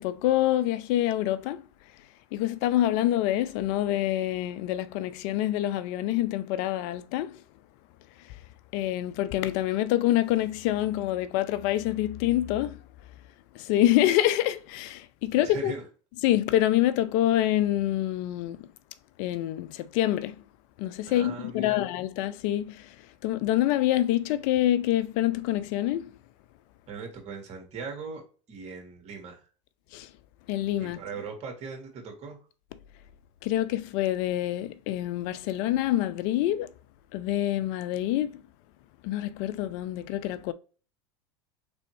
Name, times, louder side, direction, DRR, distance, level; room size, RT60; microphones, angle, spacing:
voice 1, 0.0-1.6 2.3-7.4 8.7-12.8 13.5-15.7 16.2-18.7 19.2-20.4 20.8-23.0 23.2-26.1 29.9-30.1 30.5-31.0 33.4-36.7 37.1-38.4 39.0-40.5, left 13 dB, 60° left, 0.4 m, -26 dB
voice 2, 15.3-15.9 21.1-21.9 26.9-28.2 28.5-29.5 30.8-32.4, right 5 dB, 45° right, 1.9 m, -39 dB
4.0 x 3.4 x 3.1 m
hypercardioid pair, 100°, 15 cm